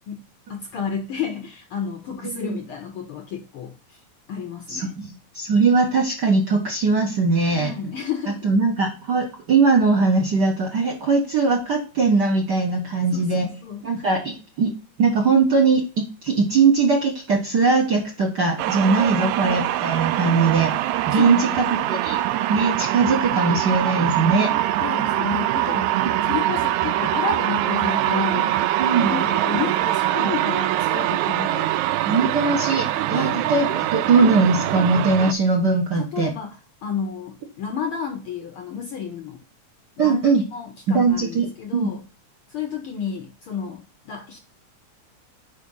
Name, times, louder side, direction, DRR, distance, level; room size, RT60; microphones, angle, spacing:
voice 1, 0.5-4.0 4.3-5.0 7.5-8.5 13.1-14.0 19.1-19.4 21.1-21.9 24.8-28.7 29.0-31.7 33.1-33.5 35.9-39.4 40.0-40.2 40.5-42.0 42.5-44.4, left 7 dB, 70° left, 1.3 m, -31 dB
voice 2, 4.7-7.8 8.4-13.5 13.8-14.7 15.0-15.8 16.2-20.7 21.1-22.2 22.5-24.5 26.0-26.3 28.8-29.1 30.2-30.3 32.0-36.3 40.0-40.4 40.9-41.9, right 4 dB, 55° right, 1.2 m, -20 dB
sound 1, 18.6-35.3, right 13 dB, 85° right, 1.9 m, -23 dB
5.2 x 5.0 x 5.4 m
omnidirectional pair, 3.3 m